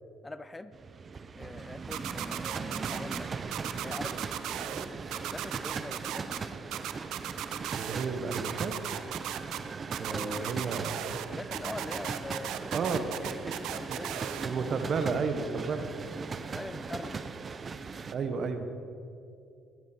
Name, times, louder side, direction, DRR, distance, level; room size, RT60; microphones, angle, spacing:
voice 1, 0.2-0.8 1.4-3.3 3.8-4.2 4.9-6.4 10.1-10.8 11.1-14.3 16.5-17.3, left 2 dB, 15° left, 14 dB, 0.5 m, -43 dB
sound 1, 0.7-18.1, right 5 dB, 40° right, 0.7 m, -39 dB
sound 2, 1.9-3.2 3.5-4.8 5.1-6.4 6.7-8.1 8.3-9.6 9.9-11.2 11.5-14.4, right 12 dB, 75° right, 0.7 m, -36 dB
voice 2, 7.7-8.7 10.0-11.0 12.7-13.5 13.9-14.0 14.4-15.9 18.1-18.7, right 5 dB, 55° right, 8 dB, 1.4 m, -32 dB
17.0 x 12.5 x 4.5 m, 2.5 s
supercardioid pair, 75°, 0 cm